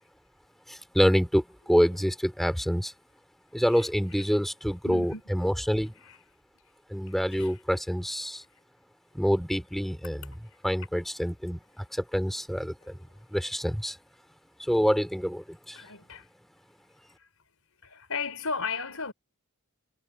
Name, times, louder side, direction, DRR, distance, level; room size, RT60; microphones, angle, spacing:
voice 1, 0.7-2.9 3.5-6.0 6.9-8.4 9.1-10.3 10.6-13.0 13.3-14.0 14.6-15.8, equal, ahead, 3.4 m, -27 dB
voice 2, 4.8-5.2 6.0-6.2 7.1-7.5 15.7-16.3 17.1-17.3 17.8-19.1, left 4 dB, 75° left, 4.5 m, -35 dB
head